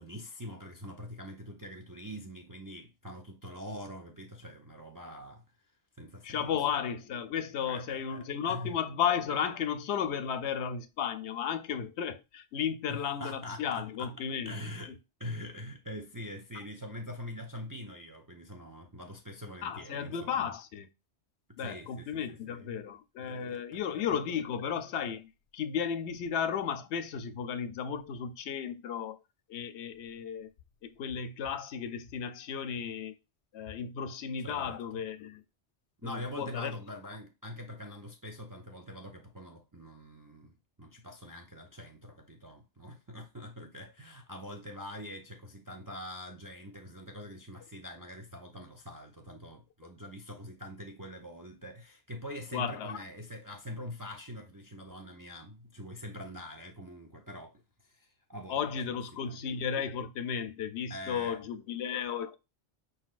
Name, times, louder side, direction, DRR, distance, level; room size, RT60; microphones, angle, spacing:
voice 1, 0.0-5.7 6.0-6.6 7.6-8.8 12.9-20.5 21.6-22.8 23.2-23.8 24.1-24.2 34.4-35.0 36.0-59.4 60.9-61.4, left 1 dB, 30° right, 0.4 m, -44 dB
voice 2, 6.2-14.5 19.6-20.9 21.6-29.2 29.5-30.5 30.8-33.1 33.5-35.4 36.0-36.7 52.5-53.0 58.5-62.4, left 7 dB, 80° left, 0.9 m, -34 dB
5.0 x 4.0 x 2.4 m
omnidirectional pair, 1.1 m